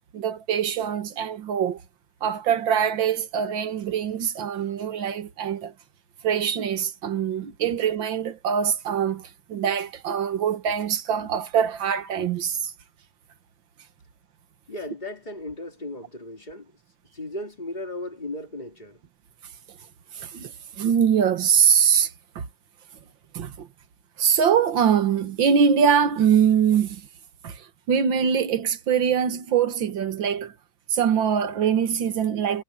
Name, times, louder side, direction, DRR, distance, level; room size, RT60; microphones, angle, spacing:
voice 1, 0.1-1.8 2.2-5.7 6.2-12.7 20.1-22.1 22.4-22.5 23.3-23.7 24.2-27.0 27.4-30.5 30.9-32.6, right 7 dB, 70° right, 2.1 m, -23 dB
voice 2, 14.7-16.7 17.1-19.0, left 1 dB, 20° left, 2.8 m, -36 dB
omnidirectional pair, 2.2 m